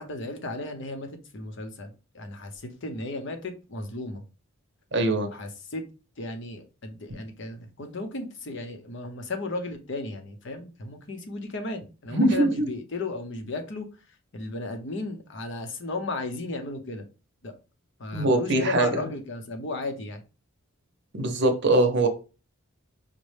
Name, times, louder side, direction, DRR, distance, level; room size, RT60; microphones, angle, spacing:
voice 1, 0.0-4.2 5.3-5.9 6.2-13.9 14.3-17.1 17.4-17.5 18.0-20.2, left 2 dB, 55° left, 5 dB, 0.7 m, -35 dB
voice 2, 4.9-5.3 12.1-12.7 18.1-19.0 21.2-22.1, right 2 dB, 50° right, 5 dB, 0.7 m, -22 dB
5.2 x 2.2 x 3.2 m, 0.32 s
head